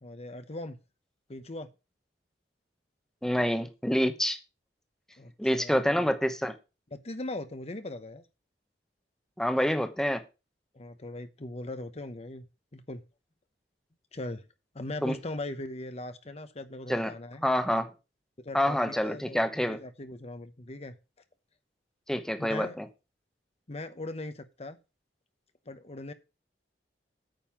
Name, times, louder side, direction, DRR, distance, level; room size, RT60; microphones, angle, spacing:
voice 1, 0.0-0.8 1.3-1.7 5.2-6.1 6.9-8.2 10.7-12.4 12.7-13.0 14.1-14.4 14.7-17.4 18.4-20.9 22.4-22.8 23.7-24.8 25.7-26.1, left 2 dB, 35° left, 0.9 m, -39 dB
voice 2, 3.2-4.4 5.4-6.5 9.4-10.2 15.0-15.2 16.9-17.1 17.4-17.9 18.5-19.8 22.1-22.9, equal, 5° left, 0.9 m, -27 dB
9.1 x 5.4 x 7.3 m
head